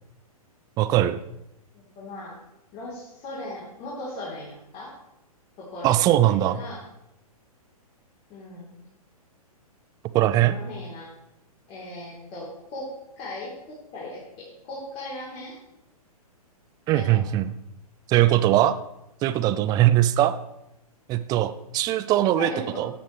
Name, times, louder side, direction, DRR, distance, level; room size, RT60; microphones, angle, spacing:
voice 1, 0.8-1.2 5.8-6.6 10.1-10.6 16.9-17.5 18.1-18.8 19.2-20.3 21.1-22.5 22.8-22.9, right 13 dB, 20° right, 13 dB, 0.4 m, -20 dB
voice 2, 1.7-2.4 2.7-4.9 5.6-6.0 6.3-6.8 8.3-8.8 10.4-11.1 11.7-12.9 13.2-15.5 16.9-17.4 22.4-22.9, left 1 dB, 30° left, -7 dB, 3.7 m, -38 dB
15.5 x 10.0 x 3.3 m, 0.86 s
figure-of-eight pair, 115°, 19 cm